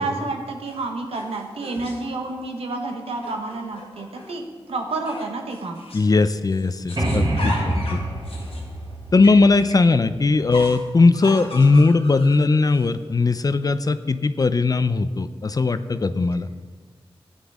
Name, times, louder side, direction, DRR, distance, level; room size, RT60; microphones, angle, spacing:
voice 1, 0.0-5.8 7.4-7.9, right 3 dB, 85° right, 3 dB, 1.2 m, -30 dB
sound 1, 0.6-2.2 3.1-4.4 5.0-6.2 6.5-9.9 10.5-12.8, left 2 dB, 75° left, 1.6 m, -38 dB
voice 2, 5.9-7.5 7.9-8.0 9.1-16.5, left 3 dB, 40° left, 12 dB, 0.5 m, -18 dB
sound 2, 7.0-10.6, right 1 dB, 50° right, 2.8 m, -26 dB
12.5 x 9.2 x 3.6 m, 1.5 s
cardioid pair, 60°, 10 cm